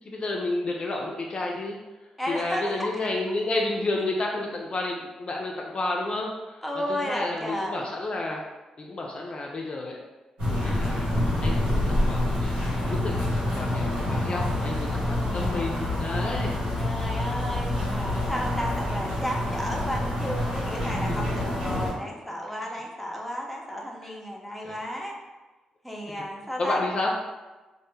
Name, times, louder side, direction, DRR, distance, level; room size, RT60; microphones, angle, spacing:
voice 1, 0.0-1.8 2.3-8.4 8.8-10.0 10.6-16.6 21.4-21.5 24.0-24.1 24.6-24.8 26.6-27.1, left 2 dB, 45° left, -1 dB, 0.4 m, -31 dB
voice 2, 2.2-2.9 6.6-7.9 15.0-15.8 16.8-25.2 25.8-26.8, equal, ahead, -2 dB, 0.6 m, -33 dB
sound 1, 10.4-21.9, left 1 dB, 85° right, 1.0 m, -27 dB
2.0 x 2.0 x 3.1 m, 1.2 s
supercardioid pair, 45°, 2 cm